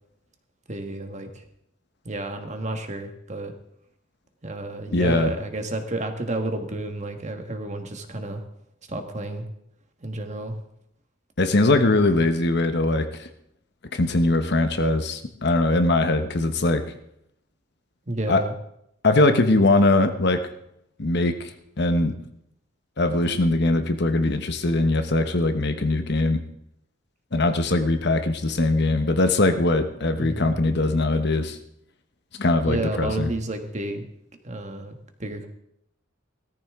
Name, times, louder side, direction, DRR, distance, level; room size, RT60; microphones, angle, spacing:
voice 1, 0.7-1.4 2.0-3.5 4.4-8.4 8.9-9.5 10.0-10.5 18.1-18.5 30.2-30.6 32.6-34.0 34.4-35.5, right 1 dB, 35° right, 5 dB, 1.5 m, -31 dB
voice 2, 4.9-5.3 11.4-13.3 13.9-16.8 18.3-18.4 19.0-20.5 21.0-21.5 21.8-22.2 23.0-26.4 27.3-31.6 32.4-33.3, left 2 dB, 60° left, 8 dB, 1.1 m, -21 dB
17.5 x 13.5 x 3.7 m, 0.76 s
head